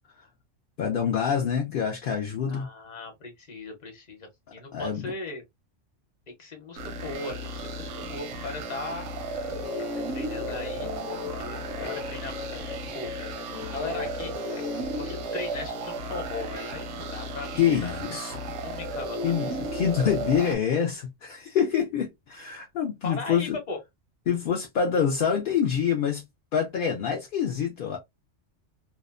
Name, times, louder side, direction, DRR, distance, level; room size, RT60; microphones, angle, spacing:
voice 1, 0.8-2.7 4.7-5.1 17.6-18.5 19.2-23.6 24.3-26.3 26.5-28.0, left 8 dB, 60° left, 0.6 m, -26 dB
voice 2, 2.5-5.4 6.3-9.1 10.1-11.0 11.4-12.7 12.9-13.1 13.5-14.4 15.0-18.0 18.3-19.6 23.0-23.8, left 3 dB, 40° left, 0.9 m, -38 dB
sound 1, 6.7-20.5, right 1 dB, 85° right, 1.0 m, -34 dB
Guitar, 9.4-14.9, left 6 dB, 85° left, 0.9 m, -39 dB
2.7 x 2.1 x 2.3 m
omnidirectional pair, 1.3 m